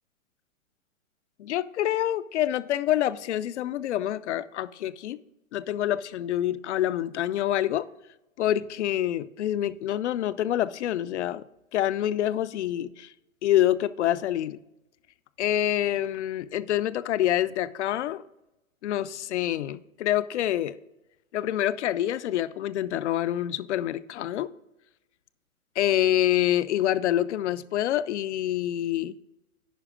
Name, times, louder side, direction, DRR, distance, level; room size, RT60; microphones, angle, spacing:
voice 1, 1.4-5.2 5.5-7.9 8.4-11.4 11.7-13.1 13.4-14.6 15.4-18.2 18.8-20.8 21.3-24.5 25.8-29.2, left 12 dB, 55° left, 0.5 m, -26 dB
10.0 x 5.0 x 5.0 m
hypercardioid pair, 135°, 43 cm